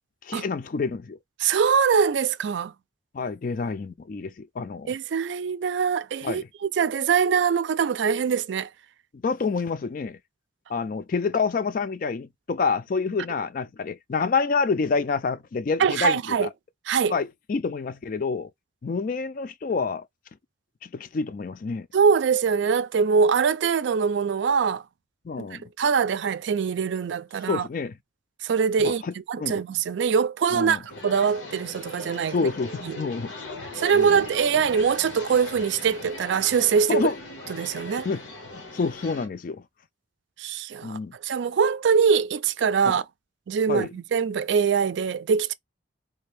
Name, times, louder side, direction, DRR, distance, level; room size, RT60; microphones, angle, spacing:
voice 1, 0.2-1.2 3.1-4.9 6.2-6.5 9.1-10.2 10.7-16.5 17.1-18.5 18.8-20.1 20.8-21.9 25.2-25.6 27.5-28.0 28.8-29.6 30.5-30.8 32.3-33.3 33.9-34.2 36.9-37.2 38.0-38.2 38.7-39.6 40.8-41.1 42.8-43.0 43.7-43.9, left 4 dB, 45° left, 0.4 m, -28 dB
voice 2, 1.4-2.7 4.9-6.4 6.8-8.7 15.8-16.5 16.9-17.2 21.9-24.8 25.5-27.7 28.4-29.0 29.3-32.3 32.8-33.0 33.8-37.1 37.5-38.1 40.4-43.0 43.5-45.5, right 6 dB, 70° right, 0.4 m, -23 dB
sound 1, 30.9-39.3, left 2 dB, 85° left, 1.4 m, -39 dB
3.3 x 2.6 x 3.3 m
head